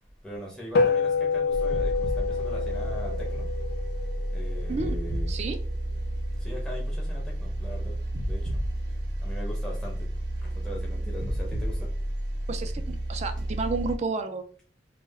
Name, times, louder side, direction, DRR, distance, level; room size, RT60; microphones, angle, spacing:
voice 1, 0.2-3.5 4.3-5.3 6.4-8.0 8.2-8.5 9.2-10.1 10.4-11.9, equal, 5° left, 0.6 m, -40 dB
sound 1, 0.7-5.4, left 5 dB, 60° left, 0.5 m, -28 dB
sound 2, 1.5-14.0, right 1 dB, 70° right, 0.7 m, -31 dB
voice 2, 5.3-5.6 12.5-14.4, right 4 dB, 40° right, 0.3 m, -31 dB
2.2 x 2.1 x 3.3 m
head